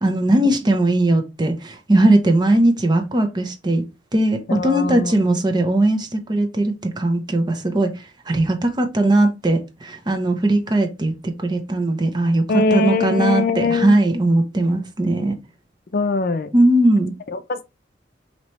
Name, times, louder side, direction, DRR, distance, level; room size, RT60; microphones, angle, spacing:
voice 1, 0.0-3.8 4.1-15.3 16.5-17.1, right 1 dB, 25° right, 0.6 m, -19 dB
voice 2, 4.5-5.1 12.5-13.9 15.9-16.5 17.3-17.6, left 3 dB, 55° left, 0.5 m, -21 dB
3.2 x 2.9 x 4.2 m
head